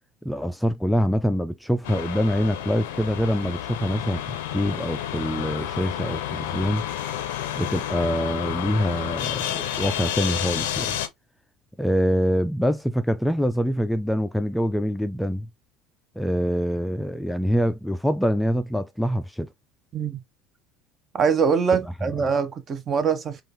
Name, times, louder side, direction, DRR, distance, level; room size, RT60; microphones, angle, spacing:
voice 1, 0.2-6.9 7.6-11.0 11.8-15.5 16.2-19.5 21.8-22.3, equal, 5° left, 0.3 m, -25 dB
sound 1, 1.8-11.1, left 11 dB, 80° left, 0.5 m, -30 dB
voice 2, 21.1-23.4, right 6 dB, 40° right, 0.7 m, -23 dB
3.6 x 2.4 x 2.5 m
hypercardioid pair, 70°, 0 cm